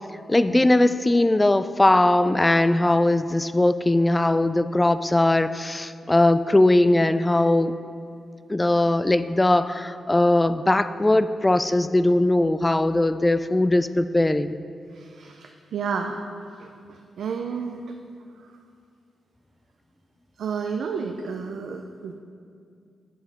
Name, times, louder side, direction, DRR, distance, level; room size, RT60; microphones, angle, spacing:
voice 1, 0.3-7.7 8.5-14.5, left 1 dB, 20° left, 13 dB, 0.3 m, -20 dB
voice 2, 14.9-16.2 16.6-17.9 20.4-22.1, right 6 dB, 80° right, 4 dB, 0.4 m, -31 dB
8.0 x 4.9 x 5.5 m, 2.3 s
cardioid pair, 60°, 0 cm